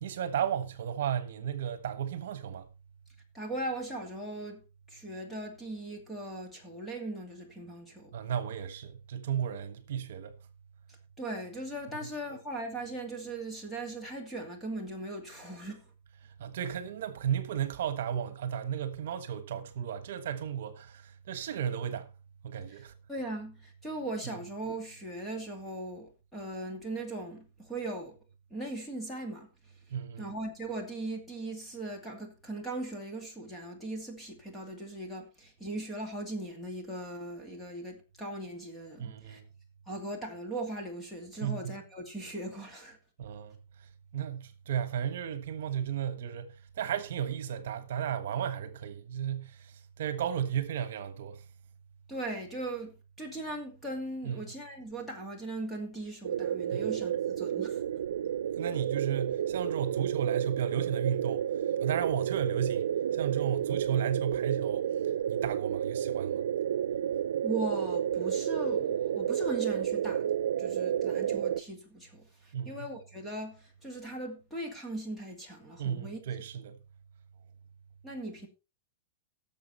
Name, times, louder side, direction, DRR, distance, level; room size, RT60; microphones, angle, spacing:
voice 1, 0.0-2.7 8.1-10.4 12.0-12.1 16.4-22.1 22.4-22.9 29.9-30.3 39.0-39.4 41.4-41.7 43.2-43.6 44.1-51.4 54.2-54.4 56.7-56.9 58.6-61.5 61.8-64.9 65.3-66.5 72.5-72.9 75.8-76.8, right 9 dB, 60° right, 1.3 m, -34 dB
voice 2, 3.3-4.6 4.9-8.1 10.9-15.9 22.7-28.2 28.5-29.5 30.2-39.4 39.9-43.0 52.1-52.9 53.2-57.8 67.4-70.3 70.6-76.2 78.0-78.5, right 2 dB, 5° left, 2.6 m, -39 dB
sound 1, 56.2-71.6, right 9 dB, 85° right, 0.6 m, -31 dB
17.0 x 7.0 x 4.3 m
supercardioid pair, 170°, 0 cm